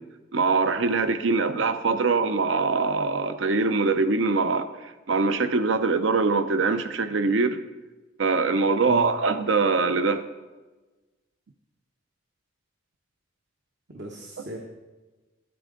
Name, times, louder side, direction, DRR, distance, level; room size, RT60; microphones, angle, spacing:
voice 1, 0.3-7.6 8.2-10.2, right 4 dB, 80° right, 10 dB, 0.6 m, -23 dB
voice 2, 13.9-14.6, right 3 dB, 65° right, 1 dB, 1.0 m, -36 dB
10.5 x 8.6 x 3.8 m, 1.2 s
head